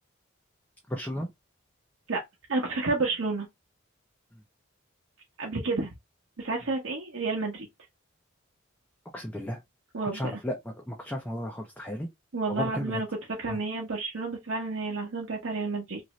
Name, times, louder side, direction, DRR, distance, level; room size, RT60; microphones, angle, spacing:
voice 1, 0.9-1.3 4.3-4.4 9.1-9.6 10.1-12.1 12.5-13.0 13.4-13.6, left 1 dB, 10° left, 0.5 m, -34 dB
voice 2, 2.5-3.5 5.4-5.9 6.4-7.7 9.9-10.4 12.3-13.1 13.4-16.0, right 3 dB, 70° right, 0.8 m, -30 dB
3.0 x 2.6 x 3.0 m
head